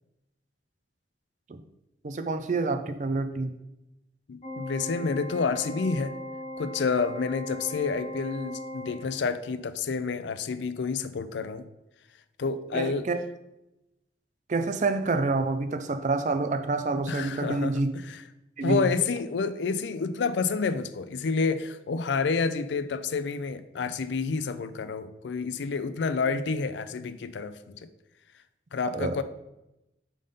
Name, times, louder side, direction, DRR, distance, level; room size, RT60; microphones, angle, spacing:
voice 1, 2.0-3.5 12.7-13.2 14.5-17.9 18.6-18.8 28.9-29.2, right 3 dB, 40° right, 8 dB, 0.4 m, -27 dB
voice 2, 4.3-6.1 6.6-11.6 12.4-13.1 17.1-18.2 18.6-27.9 28.7-29.2, left 4 dB, 85° left, 12 dB, 0.4 m, -29 dB
Organ, 4.4-9.5, left 1 dB, 35° left, 1.2 m, -39 dB
5.2 x 3.7 x 5.3 m, 0.92 s
head